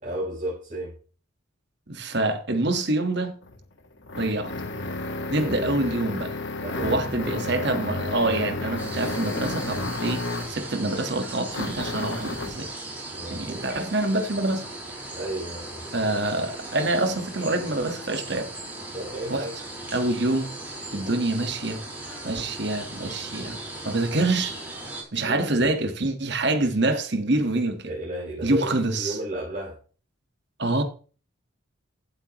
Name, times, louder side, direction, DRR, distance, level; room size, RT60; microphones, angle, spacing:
voice 1, 0.0-0.9 5.4-5.8 6.6-7.3 13.1-13.7 15.1-15.9 18.9-19.5 25.2-25.7 27.8-29.8, right 1 dB, 35° right, 5.2 m, -33 dB
voice 2, 1.9-3.3 4.2-4.5 5.3-6.3 6.8-12.7 13.3-14.6 15.9-18.5 19.3-19.4 19.9-20.5 20.9-21.8 22.2-23.6 23.8-24.5 25.1-27.9 28.4-29.2 30.6-30.8, right 2 dB, 55° right, 1.6 m, -26 dB
sound 1, 3.4-10.6 11.5-12.6, left 2 dB, 55° left, 1.4 m, -32 dB
sound 2, 8.8-25.0, right 1 dB, 10° right, 4.4 m, -38 dB
15.0 x 8.1 x 3.1 m
head